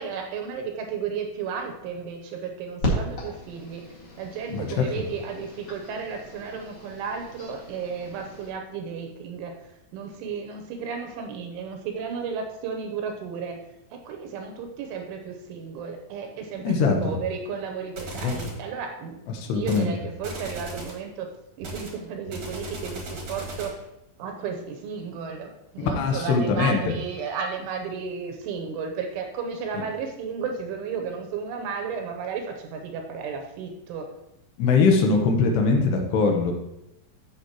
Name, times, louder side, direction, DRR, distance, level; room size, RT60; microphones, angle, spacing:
voice 1, 0.0-3.8 4.2-9.6 9.9-13.6 13.9-19.2 19.5-21.3 21.6-23.8 24.2-34.1, right 6 dB, 80° right, 4 dB, 3.1 m, -33 dB
sound 1, 2.8-8.5, equal, 55° left, 1.6 m, -35 dB
voice 2, 4.5-4.8 16.6-17.0 18.2-18.3 19.3-19.9 25.8-26.8 34.6-36.5, left 4 dB, 70° left, 3 dB, 2.7 m, -21 dB
sound 2, 18.0-18.6 19.6-19.9 20.2-21.0 21.6-23.8, right 1 dB, 55° right, 2.0 m, -37 dB
15.0 x 6.0 x 3.0 m, 0.85 s
omnidirectional pair, 5.9 m